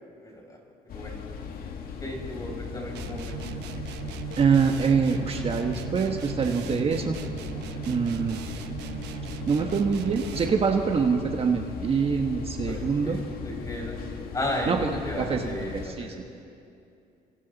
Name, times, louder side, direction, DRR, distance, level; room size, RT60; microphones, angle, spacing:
voice 1, 0.2-0.6 0.9-1.1 2.0-3.4 12.7-14.0 14.3-16.4, left 1 dB, 20° left, -1 dB, 6.0 m, -34 dB
sound 1, 0.9-15.9, left 6 dB, 60° left, 2.2 m, -38 dB
sound 2, 3.0-10.7, right 11 dB, 80° right, 1.1 m, -38 dB
voice 2, 4.4-7.2 7.9-8.4 9.5-13.2 14.7-14.9 15.2-16.1, right 5 dB, 35° right, 3 dB, 1.3 m, -25 dB
29.0 x 26.0 x 4.1 m, 2.6 s
cardioid pair, 110°, 17 cm